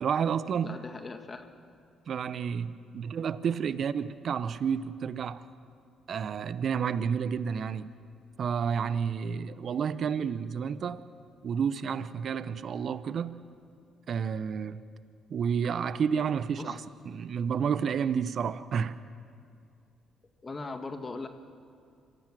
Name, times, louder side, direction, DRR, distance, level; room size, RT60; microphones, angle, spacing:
voice 1, 0.0-0.8 2.1-5.4 6.1-7.9 8.4-11.0 11.4-13.4 14.1-14.8 15.3-16.8 17.1-19.0, right 7 dB, 55° right, 0.8 m, -30 dB
voice 2, 0.6-1.5 9.3-9.4 16.6-16.8 20.4-21.3, left 3 dB, 35° left, 1.6 m, -39 dB
26.5 x 16.0 x 6.2 m
hypercardioid pair, 50°, 0 cm